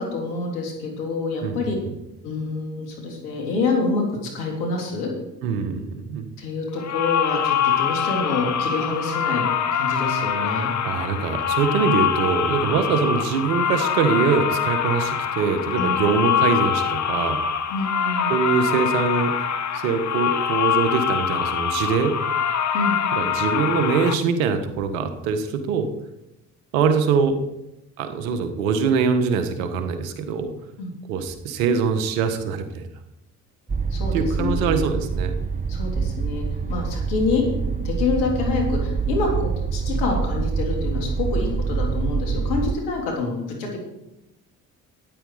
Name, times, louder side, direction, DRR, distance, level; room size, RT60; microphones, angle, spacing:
voice 1, 0.0-1.8 2.2-5.1 6.4-9.5 9.7-10.7 15.8-15.9 17.7-18.3 22.7-23.0 30.8-30.9 33.9-34.8 35.7-37.4 37.8-43.8, left 3 dB, 85° left, 0 dB, 3.5 m, -27 dB
voice 2, 1.4-1.9 5.4-6.3 10.8-17.4 18.3-19.3 19.7-22.1 23.1-25.9 26.7-27.4 28.0-30.5 31.1-32.9 34.1-35.4, right 5 dB, 90° right, 8 dB, 1.3 m, -23 dB
sound 1, 6.8-24.2, left 8 dB, 45° left, 1.3 m, -24 dB
sound 2, 33.7-42.7, right 5 dB, 20° right, 0.9 m, -25 dB
12.5 x 9.7 x 4.9 m, 0.90 s
hypercardioid pair, 55°, 39 cm